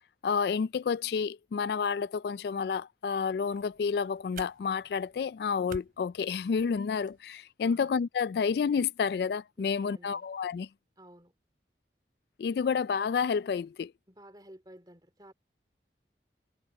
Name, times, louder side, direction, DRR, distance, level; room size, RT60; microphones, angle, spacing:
voice 1, 0.2-10.7 12.4-13.9, left 6 dB, 65° left, 0.3 m, -30 dB
sound 1, 3.2-7.2, right 3 dB, 50° right, 4.3 m, -51 dB
voice 2, 9.6-10.3 11.0-11.3 14.1-15.3, right 1 dB, 25° right, 3.3 m, -53 dB
head